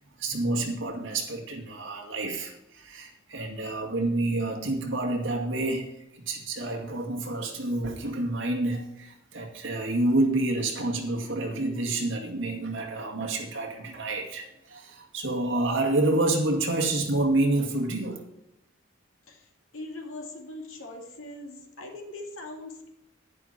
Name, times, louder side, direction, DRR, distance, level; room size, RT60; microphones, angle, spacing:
voice 1, 0.2-18.2, right 2 dB, 65° right, 0 dB, 2.2 m, -28 dB
voice 2, 19.7-22.9, left 2 dB, 90° left, 2 dB, 2.4 m, -41 dB
10.5 x 10.5 x 4.3 m, 0.85 s
head